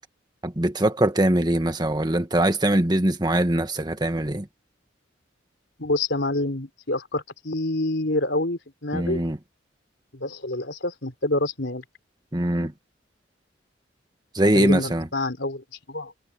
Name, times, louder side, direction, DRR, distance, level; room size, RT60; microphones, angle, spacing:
voice 1, 0.4-4.5 8.9-9.4 12.3-12.7 14.3-15.1, right 1 dB, 20° right, 1.6 m, -22 dB
voice 2, 5.8-9.2 10.1-11.8 14.5-16.1, left 2 dB, 70° left, 4.0 m, -27 dB
head